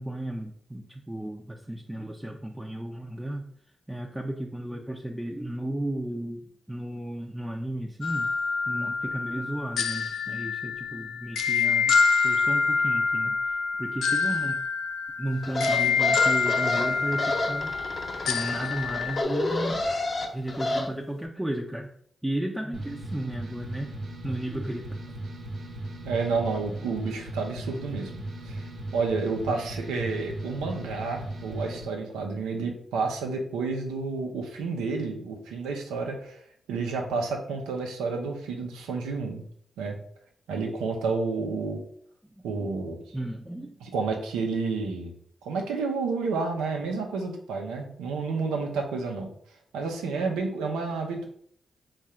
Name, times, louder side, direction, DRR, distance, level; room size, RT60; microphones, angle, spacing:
voice 1, 0.0-3.5 3.9-8.3 8.7-14.6 15.2-17.7 18.3-19.8 20.3-21.9 22.2-24.0 24.2-25.2 42.2-42.7 43.1-43.8, right 1 dB, 10° right, 0 dB, 0.6 m, -34 dB
sound 1, 8.0-19.2, left 5 dB, 80° left, 0.3 m, -26 dB
sound 2, 15.4-20.9, left 2 dB, 50° left, 1.0 m, -30 dB
sound 3, 22.7-31.8, right 1 dB, 70° right, 1.0 m, -37 dB
voice 2, 26.0-28.7 28.9-36.4 36.7-39.4 39.8-40.0 40.5-41.8 42.4-43.0 43.8-45.1 45.4-49.3 49.7-51.3, right 4 dB, 90° right, 1 dB, 0.7 m, -30 dB
3.7 x 2.5 x 4.3 m, 0.63 s
supercardioid pair, 40°, 0 cm